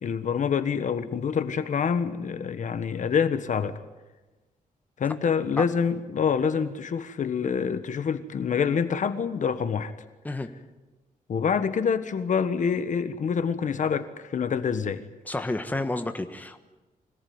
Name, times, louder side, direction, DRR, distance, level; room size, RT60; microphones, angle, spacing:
voice 1, 0.0-3.8 5.0-9.9 11.3-15.0, left 6 dB, 60° left, 11 dB, 1.3 m, -26 dB
voice 2, 15.3-16.6, left 2 dB, 10° left, 7 dB, 1.4 m, -30 dB
25.0 x 18.0 x 9.6 m, 1.2 s
wide cardioid pair, 140°, 15 cm